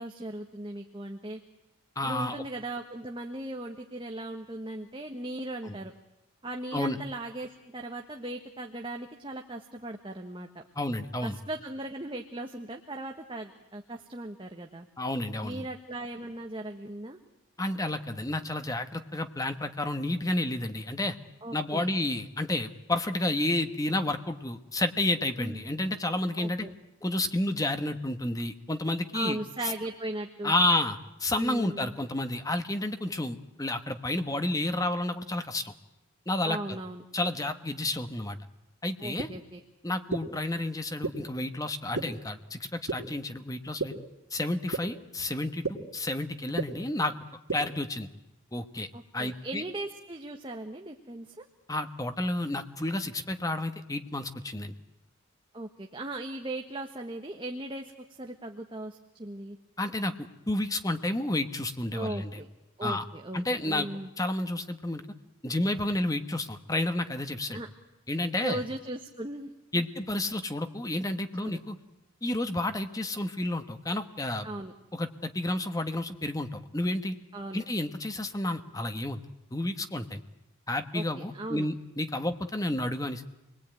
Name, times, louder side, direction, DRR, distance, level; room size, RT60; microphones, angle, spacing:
voice 1, 0.0-1.4 2.0-5.9 6.4-10.5 11.2-14.9 15.4-17.2 21.4-21.9 25.4-25.6 26.4-26.8 29.1-30.5 31.4-31.9 36.4-37.0 39.0-39.6 48.9-51.4 55.5-59.6 61.9-62.5 62.8-64.1 67.5-67.7 68.4-69.8 71.4-71.6 74.4-74.7 77.3-77.6 80.9-81.7, right 1 dB, 25° right, 4 dB, 1.3 m, -38 dB
voice 2, 2.0-2.4 5.6-5.7 6.7-7.0 10.7-11.4 15.0-15.6 17.6-21.2 21.5-26.7 27.0-29.4 29.6-29.7 30.4-35.7 36.3-36.6 37.1-38.4 38.8-39.3 39.8-43.9 44.3-47.1 47.5-48.1 48.5-48.9 49.1-49.6 51.7-54.7 59.8-60.1 60.5-62.4 62.8-63.0 63.3-63.9 64.2-65.0 65.4-67.6 68.1-68.6 69.7-71.8 72.2-74.5 74.9-77.2 77.5-79.2 79.5-80.2 80.7-83.2, left 1 dB, 15° left, 8 dB, 1.3 m, -30 dB
sound 1, 39.2-39.3 40.1-40.2 41.0-41.1 41.9-42.0 42.9-43.0 43.8-43.9 44.7-44.8 45.6-45.7 46.6-46.7 47.5-47.6, right 3 dB, 85° right, 2.3 m, -29 dB
28.5 x 21.0 x 9.1 m, 0.96 s
head